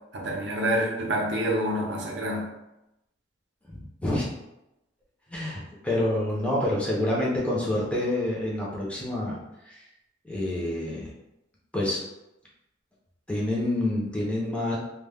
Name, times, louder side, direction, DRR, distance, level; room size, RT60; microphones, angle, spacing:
voice 1, 0.1-2.5, right 1 dB, 75° right, 0 dB, 0.6 m, -27 dB
voice 2, 3.7-4.3 5.3-9.4 9.7-9.8 10.2-11.1 11.7-12.0 13.3-14.8, left 1 dB, 5° left, -5 dB, 0.5 m, -27 dB
2.2 x 2.1 x 3.3 m, 0.90 s
head